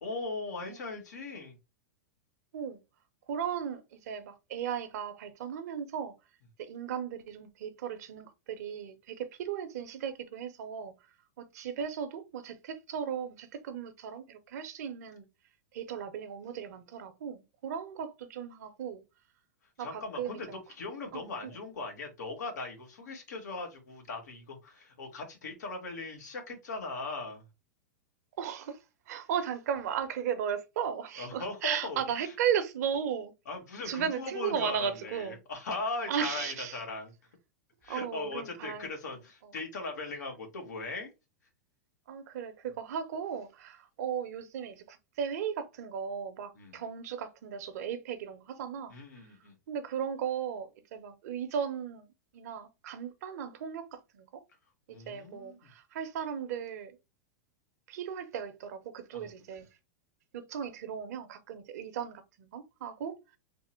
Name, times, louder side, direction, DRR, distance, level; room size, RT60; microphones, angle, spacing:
voice 1, 0.0-1.6 19.6-27.5 31.2-32.3 33.4-37.1 37.8-41.1 46.5-46.8 48.9-49.5 54.9-55.7 59.1-59.3, left 3 dB, 85° left, 1.5 m, -39 dB
voice 2, 3.3-6.2 6.6-10.9 11.4-15.3 15.7-19.0 19.8-20.6 21.1-21.5 28.4-33.3 33.9-35.4 36.1-36.7 37.9-38.9 39.4-39.5 42.1-49.0 49.7-52.1 52.3-54.4 55.1-57.0 57.9-59.7 60.3-63.2, right 8 dB, 70° right, 0.8 m, -36 dB
3.5 x 2.1 x 4.3 m
hypercardioid pair, 120°, 9 cm